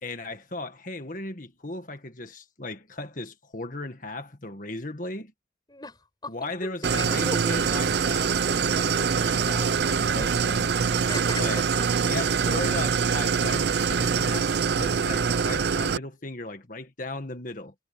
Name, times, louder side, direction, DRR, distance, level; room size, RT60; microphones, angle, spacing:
voice 1, 0.0-5.3 6.3-10.9 11.4-11.7 12.0-17.7, left 2 dB, 45° left, 1.8 m, -36 dB
voice 2, 5.7-7.4 10.9-11.9, left 2 dB, 25° left, 7.8 m, -38 dB
Idling, 6.8-16.0, right 6 dB, 65° right, 0.5 m, -24 dB
head